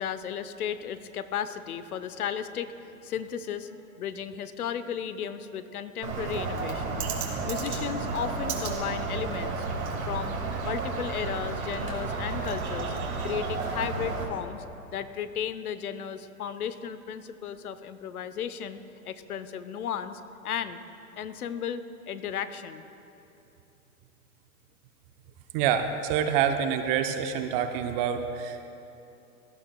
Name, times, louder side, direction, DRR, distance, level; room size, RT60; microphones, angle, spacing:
voice 1, 0.0-7.0 7.4-9.7 10.1-12.9 13.2-14.6 14.9-18.8 19.0-20.8 21.1-22.8, left 8 dB, 80° left, 12 dB, 0.8 m, -34 dB
Bird, 6.0-14.2, right 4 dB, 70° right, 2.3 m, -32 dB
voice 2, 25.5-28.7, right 8 dB, 40° right, 7 dB, 0.7 m, -27 dB
17.0 x 12.0 x 2.3 m, 2.8 s
hypercardioid pair, 115°, 44 cm